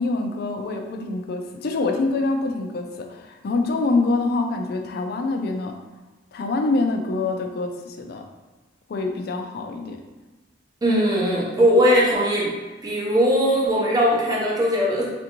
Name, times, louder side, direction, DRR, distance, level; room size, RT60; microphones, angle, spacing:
voice 1, 0.0-5.8 6.3-8.2 8.9-10.0, left 3 dB, 55° left, 4 dB, 0.4 m, -25 dB
voice 2, 10.8-12.5 12.8-15.1, equal, 20° right, -5 dB, 0.7 m, -19 dB
3.4 x 2.6 x 2.9 m, 1.2 s
head